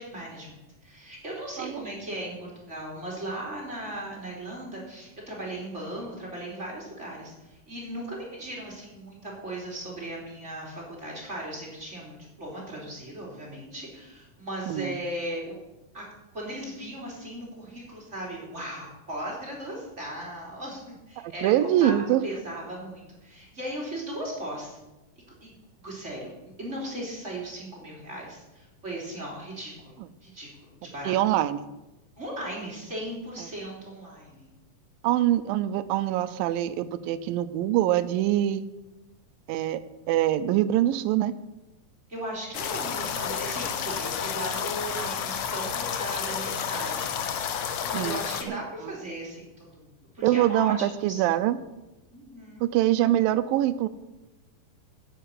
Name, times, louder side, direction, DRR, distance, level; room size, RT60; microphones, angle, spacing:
voice 1, 0.0-15.6 15.9-16.1 16.3-21.9 22.2-24.8 25.4-25.6 25.8-31.2 32.2-34.5 42.1-47.5 47.9-50.7 51.1-51.2 52.1-52.6, right 1 dB, 20° right, -4 dB, 3.2 m, -37 dB
voice 2, 21.2-22.2 31.1-31.6 35.0-38.6 39.5-39.8 40.1-41.3 47.9-48.9 50.2-51.6 52.6-53.9, right 13 dB, 85° right, 13 dB, 2.4 m, -24 dB
sound 1, 42.5-48.4, left 8 dB, 80° left, 1.4 m, -31 dB
10.0 x 7.8 x 8.4 m, 1.0 s
omnidirectional pair, 4.0 m